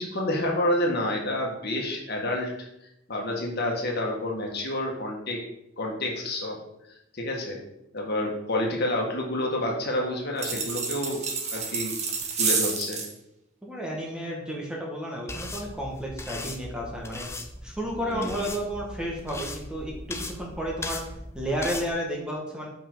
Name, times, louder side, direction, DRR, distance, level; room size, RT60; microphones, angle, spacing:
voice 1, 0.0-2.7 3.1-5.4 5.8-6.6 7.1-7.6 7.9-11.2 11.5-12.0 12.4-13.0 18.0-18.4, left 1 dB, 50° left, 0 dB, 1.7 m, -29 dB
sound 1, 10.4-13.1, right 5 dB, 35° right, 1.2 m, -29 dB
voice 2, 13.6-17.2 17.6-21.0 21.3-22.7, equal, 5° right, -2 dB, 1.4 m, -32 dB
sound 2, 15.3-21.9, left 2 dB, 15° left, 0.6 m, -38 dB
5.6 x 5.3 x 6.2 m, 0.83 s
head